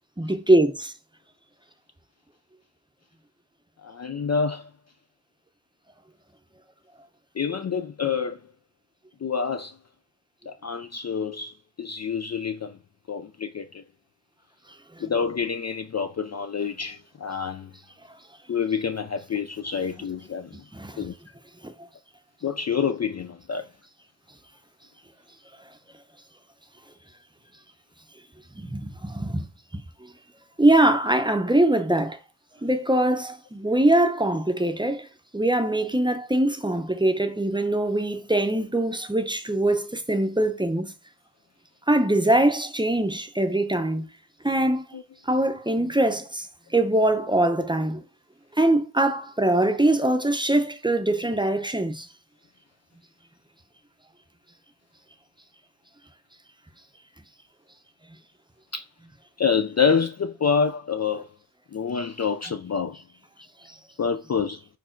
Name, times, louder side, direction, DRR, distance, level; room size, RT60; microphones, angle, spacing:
voice 1, 0.2-0.9 15.0-15.1 20.5-21.1 21.6-21.7 28.5-29.5 29.7-30.1 30.6-32.2 32.6-35.1 35.3-40.9 41.9-44.1 44.4-44.8 45.3-46.5 46.7-48.0 48.5-52.1, right 1 dB, 10° right, 0.7 m, -23 dB
voice 2, 3.8-4.7 7.4-8.4 9.2-9.8 10.5-12.8 13.1-13.8 15.0-17.7 18.5-20.6 21.0-21.1 22.4-23.7 44.9-45.0 58.7-58.8 59.4-61.3 61.7-63.0 63.4-63.5 64.0-64.6, left 6 dB, 40° left, 0.4 m, -27 dB
5.4 x 4.7 x 4.4 m
wide cardioid pair, 135°, 44 cm